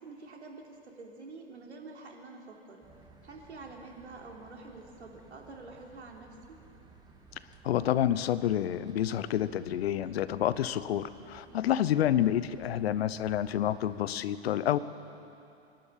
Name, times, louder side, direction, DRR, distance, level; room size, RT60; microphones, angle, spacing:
voice 1, 0.0-2.8 3.2-6.3 11.5-11.7, right 3 dB, 85° right, 0 dB, 3.5 m, -47 dB
sound 1, 2.8-14.1, right 4 dB, 10° right, 2.1 m, -57 dB
voice 2, 7.6-14.8, left 11 dB, 65° left, 15 dB, 0.9 m, -28 dB
25.0 x 12.0 x 8.8 m, 2.8 s
hypercardioid pair, 110°, 33 cm